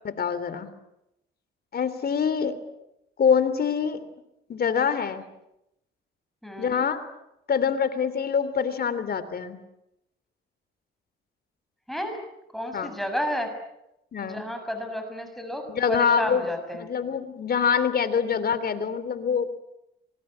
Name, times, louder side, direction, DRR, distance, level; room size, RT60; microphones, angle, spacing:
voice 1, 0.0-0.7 1.7-2.5 3.2-4.0 4.5-5.2 6.6-7.0 7.5-9.6 12.7-12.9 14.1-14.4 15.7-16.5 16.7-19.5, left 6 dB, 50° left, 13 dB, 3.1 m, -25 dB
voice 2, 6.4-6.8 11.9-12.2 12.5-13.5 14.2-15.6 15.9-16.9, equal, ahead, 5 dB, 6.8 m, -31 dB
26.5 x 23.5 x 8.8 m, 0.86 s
cardioid pair, 90°, 20 cm